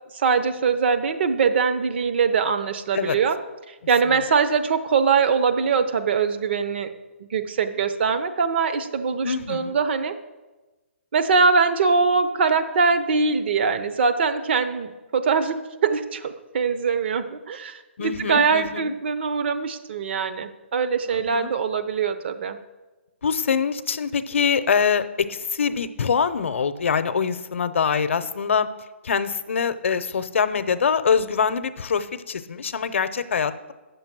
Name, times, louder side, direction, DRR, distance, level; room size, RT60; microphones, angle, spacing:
voice 1, 0.1-3.4 3.7-6.9 7.3-10.2 11.1-22.6, right 5 dB, 55° right, 9 dB, 0.8 m, -22 dB
voice 2, 9.2-9.8 18.0-18.9 21.1-21.5 23.2-28.7 29.0-33.7, left 6 dB, 70° left, 13 dB, 0.7 m, -24 dB
8.9 x 6.8 x 6.0 m, 1.2 s
hypercardioid pair, 150°, 7 cm